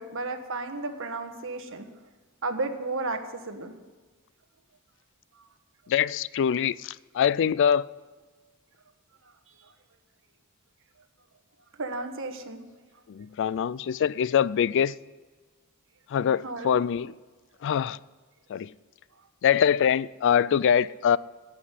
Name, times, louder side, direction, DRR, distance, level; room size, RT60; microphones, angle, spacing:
voice 1, 0.0-1.9 2.4-3.2 3.5-3.7 5.3-5.4 11.8-12.6 16.4-16.8, right 3 dB, 60° right, 1.4 m, -33 dB
voice 2, 5.9-7.8 13.1-14.9 16.1-17.1 17.6-18.0 18.5-18.7 19.4-21.2, left 8 dB, 55° left, 0.3 m, -24 dB
11.5 x 8.4 x 9.2 m
head